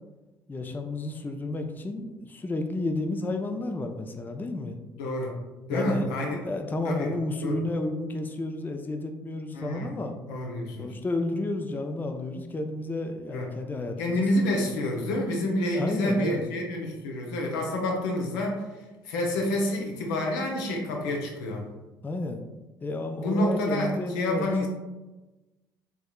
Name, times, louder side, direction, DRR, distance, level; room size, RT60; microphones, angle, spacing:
voice 1, 0.5-4.8 5.7-6.1 6.3-10.1 10.8-14.2 15.7-16.4 22.0-22.4 22.8-24.7, left 2 dB, 15° left, 5 dB, 0.4 m, -31 dB
voice 2, 5.0-5.3 5.7-6.4 6.8-7.1 7.4-7.6 9.5-9.9 10.3-10.9 13.3-13.5 14.0-21.6 23.2-24.7, left 1 dB, 75° left, 0 dB, 0.6 m, -28 dB
3.5 x 3.1 x 2.3 m, 1.1 s
hypercardioid pair, 55°, 11 cm